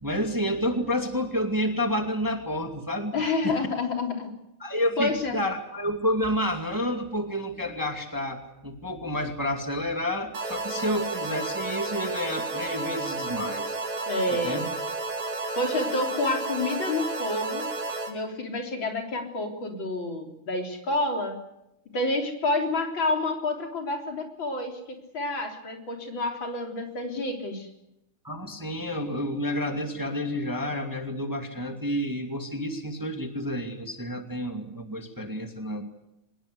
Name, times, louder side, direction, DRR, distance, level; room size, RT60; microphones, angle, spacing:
voice 1, 0.0-3.2 3.4-3.6 4.6-13.8 14.3-14.7 28.2-35.8, equal, 10° right, 5 dB, 2.2 m, -29 dB
voice 2, 3.1-4.3 5.0-5.4 14.1-14.6 15.6-17.7 18.1-21.4 21.9-27.7, left 2 dB, 65° left, 3 dB, 4.4 m, -29 dB
sound 1, 10.3-18.1, right 3 dB, 80° right, 3.8 m, -32 dB
24.5 x 21.0 x 8.1 m, 0.85 s
omnidirectional pair, 2.3 m